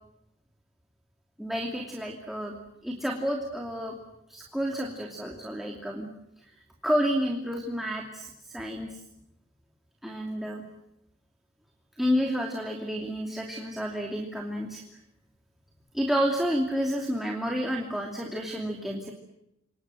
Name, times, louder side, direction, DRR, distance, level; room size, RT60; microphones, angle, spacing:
voice 1, 1.4-2.5 2.8-3.9 4.3-6.1 6.8-8.9 10.0-10.6 12.0-14.8 15.9-19.1, equal, ahead, 0 dB, 2.7 m, -30 dB
29.0 x 25.0 x 7.8 m, 0.86 s
head